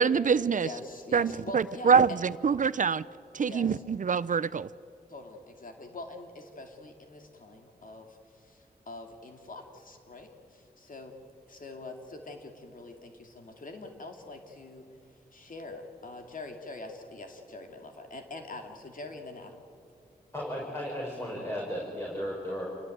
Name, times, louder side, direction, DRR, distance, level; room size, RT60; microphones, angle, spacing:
voice 1, 0.0-0.7 1.1-3.0 3.3-4.7, right 6 dB, 50° right, 18 dB, 0.6 m, -25 dB
voice 2, 0.6-2.2 3.4-3.8 5.1-11.1 11.5-14.9 15.3-19.6, left 2 dB, 55° left, 4 dB, 2.6 m, -44 dB
voice 3, 20.3-22.7, equal, 15° left, -3 dB, 5.8 m, -35 dB
28.0 x 18.0 x 9.2 m, 2.5 s
wide cardioid pair, 80°, 16 cm